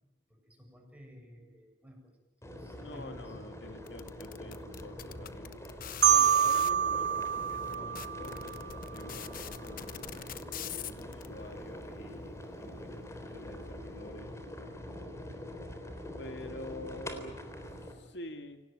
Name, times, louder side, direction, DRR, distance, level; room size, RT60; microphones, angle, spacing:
voice 1, 0.3-2.1 2.4-3.4 16.6-16.7, equal, 10° right, 2 dB, 7.5 m, -52 dB
sound 1, 2.4-17.9, left 1 dB, 15° left, 3.8 m, -44 dB
voice 2, 2.8-5.7 6.1-10.4 10.8-14.3 16.2-17.3 17.8-18.6, left 1 dB, 65° left, 6 dB, 2.2 m, -48 dB
sound 2, 3.9-6.7 7.4-7.5 7.7-11.3, left 10 dB, 50° left, 1.1 m, -42 dB
Marimba xylophone, 6.0-8.9, right 8 dB, 65° right, 1.0 m, -27 dB
28.0 x 19.0 x 9.4 m, 0.94 s
head